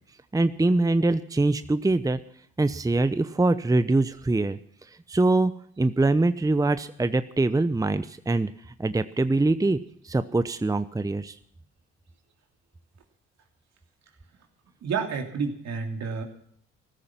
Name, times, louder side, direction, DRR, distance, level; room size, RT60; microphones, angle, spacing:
voice 1, 0.3-2.2 2.6-4.6 5.1-5.5 5.8-8.5 8.8-9.8 10.0-11.3, right 2 dB, 10° right, 13 dB, 0.8 m, -23 dB
voice 2, 14.8-16.2, right 5 dB, 65° right, 3 dB, 2.9 m, -29 dB
15.0 x 13.5 x 5.9 m, 0.65 s
hypercardioid pair, 50°, 29 cm